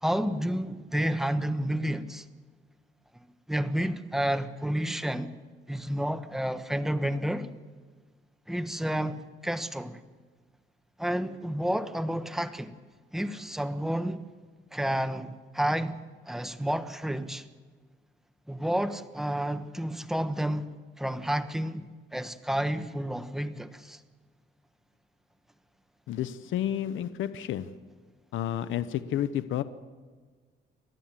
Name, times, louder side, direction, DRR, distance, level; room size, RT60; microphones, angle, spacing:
voice 1, 0.0-2.2 3.5-5.3 5.7-7.5 8.5-10.0 11.0-12.7 13.1-14.2 14.7-17.4 18.5-20.7 21.0-24.0, right 1 dB, ahead, 1.2 m, -30 dB
voice 2, 26.1-27.7 28.3-29.6, left 11 dB, 80° left, 0.9 m, -30 dB
29.5 x 12.5 x 7.5 m
cardioid pair, 90°, 20 cm